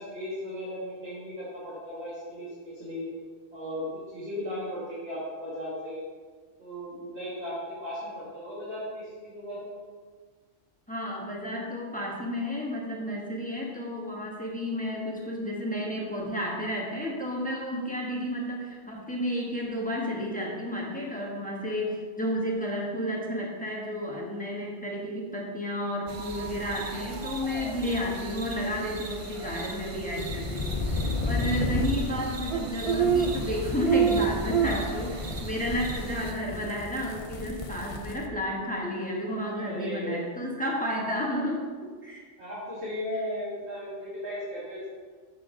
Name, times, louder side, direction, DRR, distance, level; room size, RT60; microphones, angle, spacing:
voice 1, 0.0-3.1 3.5-6.0 6.6-9.7 39.5-40.2 42.4-44.8, equal, 60° right, -9 dB, 2.2 m, -36 dB
voice 2, 10.9-41.7 42.0-42.2, equal, 5° left, -3 dB, 1.3 m, -32 dB
sound 1, 26.1-36.3, right 7 dB, 45° right, 0.4 m, -31 dB
sound 2, 30.2-38.3, left 3 dB, 40° left, 0.5 m, -33 dB
7.4 x 7.0 x 3.8 m, 1.5 s
omnidirectional pair, 1.3 m